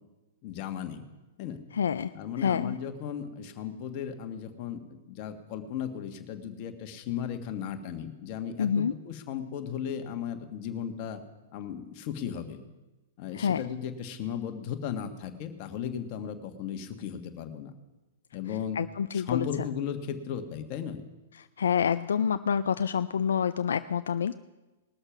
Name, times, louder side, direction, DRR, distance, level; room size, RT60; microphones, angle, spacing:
voice 1, 0.4-1.0 1.4-1.6 2.1-11.2 11.5-12.6 13.2-17.7 18.3-18.8 19.1-21.0, left 8 dB, 45° left, 6 dB, 1.5 m, -36 dB
voice 2, 1.7-2.1 2.4-2.8 8.6-8.9 13.3-13.6 18.8-19.5 21.6-24.4, left 7 dB, 80° left, 12 dB, 0.4 m, -27 dB
20.0 x 6.7 x 5.9 m, 1.1 s
hypercardioid pair, 125°, 0 cm